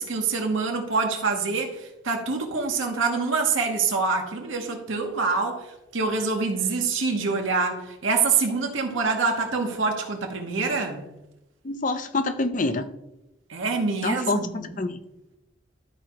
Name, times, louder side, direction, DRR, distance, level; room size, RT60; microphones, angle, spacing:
voice 1, 0.0-11.0 13.5-14.7, right 4 dB, 75° right, 2 dB, 1.1 m, -26 dB
voice 2, 11.6-12.9 14.0-15.0, left 2 dB, 40° left, 10 dB, 0.5 m, -26 dB
12.5 x 4.6 x 3.0 m, 0.92 s
head